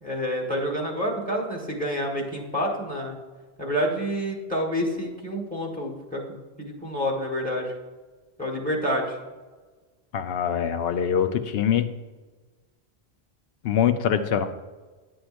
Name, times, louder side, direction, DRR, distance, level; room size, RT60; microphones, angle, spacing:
voice 1, 0.0-3.2 3.6-6.2 6.6-7.7 8.4-9.2, equal, 10° left, -2 dB, 1.4 m, -28 dB
voice 2, 10.1-11.9 13.6-14.5, left 8 dB, 70° left, 9 dB, 0.8 m, -23 dB
10.5 x 7.7 x 2.6 m, 1.3 s
omnidirectional pair, 1.1 m